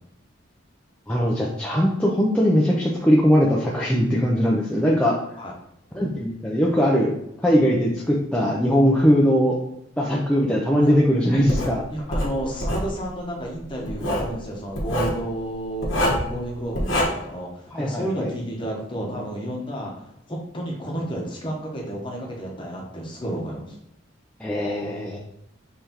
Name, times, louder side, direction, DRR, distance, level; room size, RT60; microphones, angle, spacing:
voice 1, 1.1-5.2 5.9-7.1 7.4-9.6 10.0-11.8 17.7-18.3 24.4-25.2, equal, 5° left, -5 dB, 0.4 m, -20 dB
Writing, 11.5-11.7 12.1-12.9 13.9-14.3 14.8-15.2 15.8-16.3 16.7-17.0, equal, 75° left, 1.2 m, -24 dB
voice 2, 11.9-23.7, right 1 dB, 25° left, -1 dB, 0.9 m, -31 dB
5.6 x 3.3 x 2.9 m, 0.79 s
head